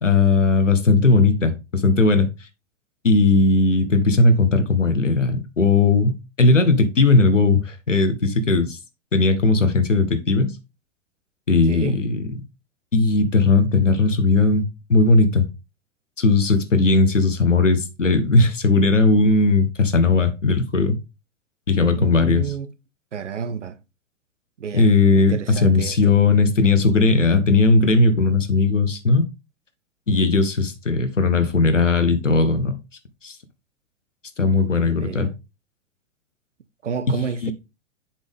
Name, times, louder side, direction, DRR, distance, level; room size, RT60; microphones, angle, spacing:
voice 1, 0.0-2.3 3.0-8.8 9.1-10.5 11.5-12.3 12.9-14.6 14.9-15.4 16.2-21.0 21.7-22.5 24.7-29.2 30.1-32.8 33.2-33.3 34.4-35.3 37.2-37.5, left 3 dB, 85° left, 1.4 m, -18 dB
voice 2, 21.9-22.7 23.1-23.8 24.6-24.9 25.1-26.1 34.9-35.3 36.8-37.5, right 6 dB, 75° right, 0.8 m, -30 dB
7.2 x 5.4 x 3.6 m
figure-of-eight pair, 105°, 36 cm